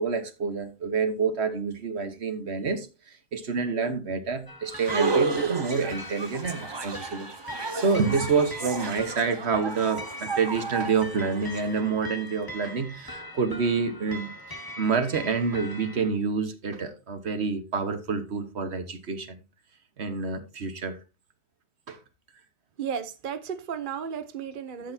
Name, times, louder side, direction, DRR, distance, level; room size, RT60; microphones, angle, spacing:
voice 1, 0.0-19.4 20.0-21.0 21.9-22.0, right 5 dB, 80° right, 1.5 m, -28 dB
sound 1, 4.5-16.1, left 1 dB, 20° left, 1.9 m, -42 dB
sound 2, 4.7-11.6, right 4 dB, 30° right, 0.7 m, -32 dB
voice 2, 22.8-24.9, right 7 dB, 55° right, 1.0 m, -34 dB
13.0 x 8.0 x 2.7 m
omnidirectional pair, 1.1 m